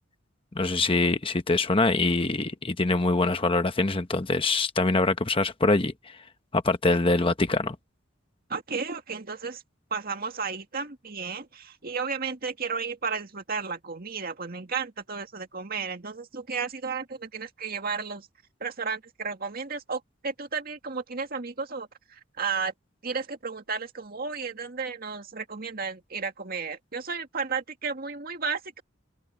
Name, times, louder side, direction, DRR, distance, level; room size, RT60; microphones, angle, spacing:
voice 1, 0.5-5.9 6.5-7.8, left 3 dB, 30° left, 1.0 m, -24 dB
voice 2, 8.5-9.6 9.9-18.3 18.6-22.7 23.0-28.8, right 5 dB, 50° right, 2.1 m, -33 dB
head